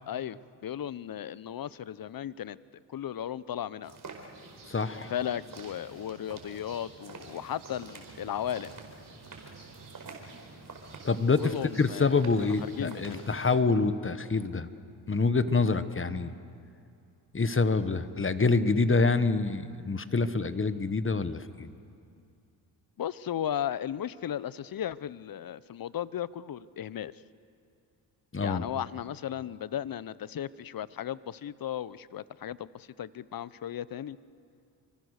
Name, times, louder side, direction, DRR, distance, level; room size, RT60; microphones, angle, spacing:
voice 1, 0.1-2.6 2.9-4.0 5.1-8.7 11.4-13.2 23.0-27.1 28.4-34.2, left 10 dB, 45° left, 18 dB, 0.8 m, -36 dB
steps on stone ground in a village with bird, 3.8-13.5, right 3 dB, 45° right, 4.8 m, -47 dB
voice 2, 4.7-5.1 11.0-14.7 15.1-16.3 17.3-21.7 28.3-28.6, left 4 dB, 25° left, 12 dB, 1.4 m, -26 dB
27.5 x 24.0 x 6.6 m, 2.5 s
supercardioid pair, 60°, 47 cm